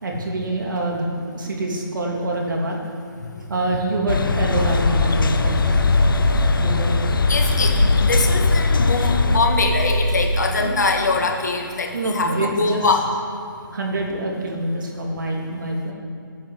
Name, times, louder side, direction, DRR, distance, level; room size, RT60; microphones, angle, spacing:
voice 1, 0.0-2.8 3.5-5.6 6.6-7.0 10.5-10.8 11.9-13.0 13.7-15.9, right 1 dB, 60° right, 0 dB, 2.9 m, -25 dB
sound 1, 4.1-9.4, left 4 dB, 70° left, 0.7 m, -21 dB
sound 2, 4.5-10.2, left 1 dB, 90° left, 3.4 m, -22 dB
voice 2, 7.3-13.1, left 3 dB, 50° left, 3 dB, 1.8 m, -23 dB
10.5 x 9.4 x 7.8 m, 2.5 s
hypercardioid pair, 175°, 12 cm